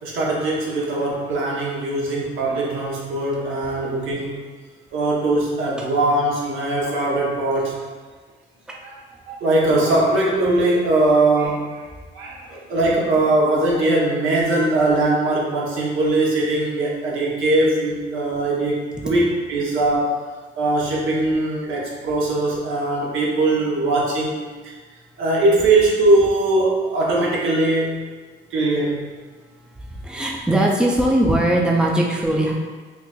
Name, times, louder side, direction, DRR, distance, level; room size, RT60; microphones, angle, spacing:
voice 1, 0.0-4.4 4.9-7.9 8.8-9.0 9.3-11.9 12.1-20.2 20.5-24.7 25.2-28.0 28.5-29.0, right 2 dB, 80° right, -4 dB, 0.9 m, -20 dB
voice 2, 30.0-32.5, right 1 dB, 5° right, -1 dB, 0.5 m, -19 dB
4.5 x 2.5 x 2.3 m, 1.4 s
cardioid pair, 90°, 20 cm